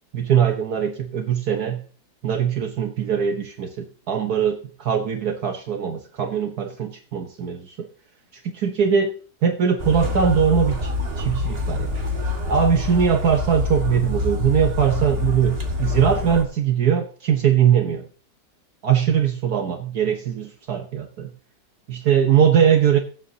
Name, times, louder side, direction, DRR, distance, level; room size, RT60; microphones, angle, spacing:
voice 1, 0.1-1.8 2.2-7.9 8.4-9.1 9.4-10.9 11.2-12.0 12.5-18.0 18.8-21.3 21.9-23.0, right 8 dB, 60° right, 5 dB, 1.4 m, -21 dB
sound 1, 9.8-16.4, left 3 dB, 35° right, 1.8 m, -26 dB
22.0 x 7.7 x 2.8 m, 0.41 s
omnidirectional pair, 1.9 m